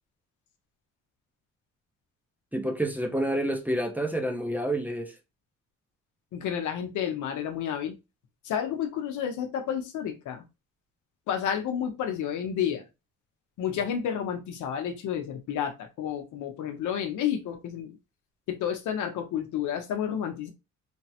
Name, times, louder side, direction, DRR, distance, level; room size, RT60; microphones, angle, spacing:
voice 1, 2.5-5.1, right 1 dB, 5° right, 0.6 m, -28 dB
voice 2, 6.3-8.0 8.4-10.4 11.3-12.8 13.6-18.0 18.5-20.5, left 9 dB, 80° left, 0.8 m, -30 dB
3.3 x 2.0 x 2.8 m
cardioid pair, 90°, 30 cm